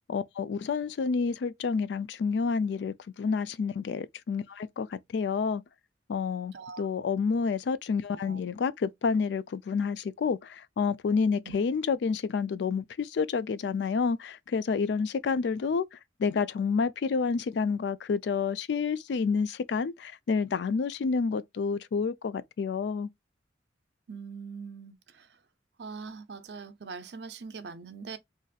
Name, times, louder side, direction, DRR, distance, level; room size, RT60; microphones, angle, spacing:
voice 1, 0.1-5.6 6.1-23.1, left 5 dB, 70° left, 0.3 m, -29 dB
voice 2, 24.1-25.3 25.8-28.2, right 5 dB, 65° right, 0.5 m, -42 dB
3.9 x 2.5 x 2.4 m
head